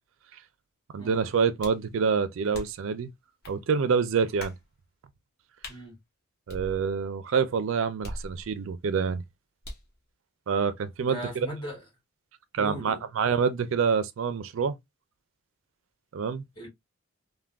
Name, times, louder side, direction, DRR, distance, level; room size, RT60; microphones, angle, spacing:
voice 1, 0.9-3.1 3.5-4.5 6.5-9.2 10.5-11.5 12.5-14.8 16.1-16.4, right 6 dB, 60° right, 0.4 m, -27 dB
sound 1, 1.6-1.9 2.5-2.9 3.4-3.6 4.4-4.7 5.6-5.8 6.5-7.1 8.0-8.7 9.6-10.0, left 1 dB, 45° left, 0.9 m, -41 dB
voice 2, 11.0-11.8 12.6-13.0 16.6-16.7, right 1 dB, 20° left, 1.9 m, -38 dB
3.4 x 2.1 x 2.2 m
head